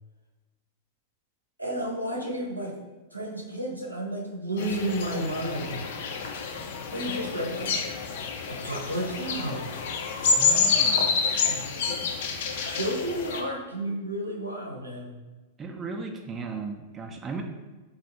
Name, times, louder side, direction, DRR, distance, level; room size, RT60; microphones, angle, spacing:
voice 1, 1.6-2.7 3.1-5.8 6.9-7.8 8.5-9.7 11.4-12.0 12.7-15.1, right 1 dB, 85° right, -1 dB, 0.7 m, -32 dB
sound 1, 4.6-13.4, left 5 dB, 55° left, 0.4 m, -28 dB
voice 2, 10.3-11.1 15.6-17.4, right 4 dB, 20° right, 3 dB, 0.4 m, -36 dB
4.0 x 2.4 x 2.8 m, 1.2 s
figure-of-eight pair, 95°, 0 cm